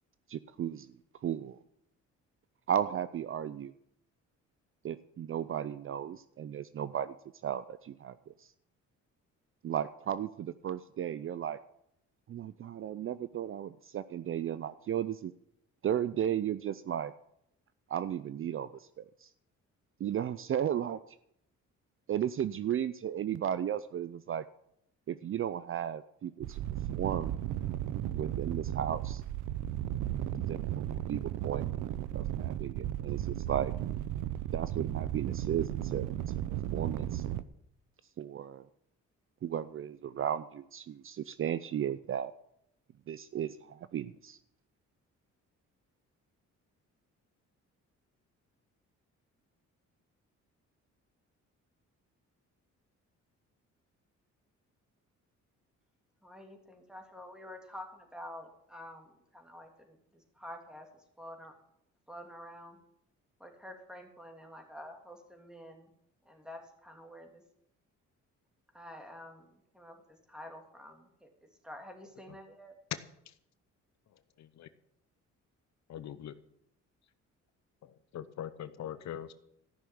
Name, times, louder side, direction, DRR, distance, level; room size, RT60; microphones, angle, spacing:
voice 1, 0.3-0.9 1.2-1.6 2.7-3.7 4.8-7.1 7.4-8.5 9.6-11.6 12.3-15.3 15.8-17.1 17.9-19.3 20.0-21.0 22.1-24.4 25.1-26.6 26.9-27.3 28.1-29.2 30.4-31.7 32.1-33.7 34.5-36.1 36.7-37.2 38.2-38.7 39.4-42.3 43.1-44.4, right 9 dB, 45° right, 15 dB, 0.5 m, -35 dB
sound 1, 26.4-37.4, right 12 dB, 90° right, 0.7 m, -35 dB
voice 2, 56.2-61.5 62.1-62.8 63.4-65.9 66.3-67.4 68.7-69.4 69.7-71.3 71.6-72.7, left 1 dB, 5° right, 3 dB, 2.9 m, -48 dB
voice 3, 74.4-74.7 75.9-76.3 77.8-79.3, left 10 dB, 65° left, 12 dB, 0.8 m, -42 dB
14.0 x 6.3 x 8.5 m, 0.76 s
cardioid pair, 90°, 30 cm